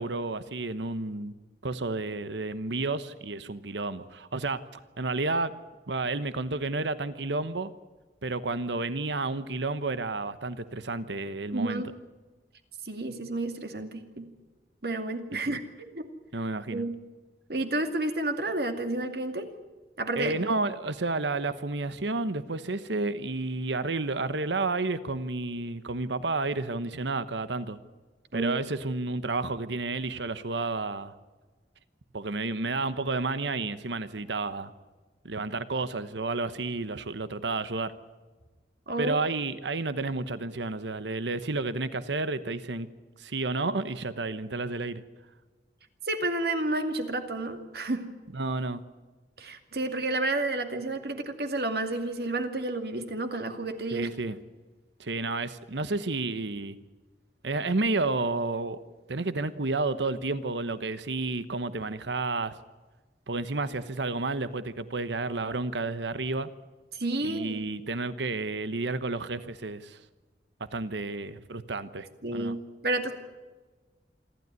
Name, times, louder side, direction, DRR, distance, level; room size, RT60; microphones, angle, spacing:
voice 1, 0.0-1.3 1.6-4.6 5.0-5.5 5.9-7.7 8.2-11.8 15.3-15.6 16.3-16.8 20.1-27.8 28.3-31.1 32.1-34.7 35.2-37.9 39.0-42.9 43.2-45.0 48.3-48.8 53.9-54.4 55.0-56.8 57.4-58.8 59.1-62.5 63.3-66.5 67.2-70.0 70.7-72.5, right 3 dB, 90° right, 13 dB, 1.1 m, -31 dB
voice 2, 11.5-11.9 12.8-14.3 14.8-16.1 16.7-17.0 17.5-19.5 20.0-20.3 28.3-28.5 38.9-39.2 46.1-48.1 49.4-54.1 66.9-67.6 72.2-73.1, right 2 dB, 60° right, 7 dB, 2.4 m, -30 dB
27.0 x 12.5 x 9.6 m, 1.3 s
head